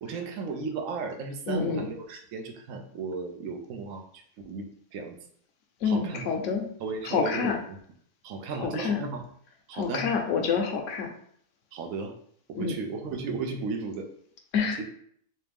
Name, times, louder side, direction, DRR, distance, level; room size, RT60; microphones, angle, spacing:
voice 1, 0.0-4.7 4.9-5.2 5.8-6.3 6.8-7.8 8.2-9.3 9.7-10.1 11.7-12.1 12.5-14.1 14.6-14.8, right 4 dB, 70° right, 4 dB, 1.0 m, -35 dB
voice 2, 1.5-1.8 5.8-6.6 7.0-7.6 8.6-9.0 9.7-11.1 12.5-12.7 14.5-14.8, left 5 dB, 65° left, 4 dB, 0.9 m, -27 dB
3.2 x 2.9 x 3.4 m, 0.63 s
omnidirectional pair, 1.6 m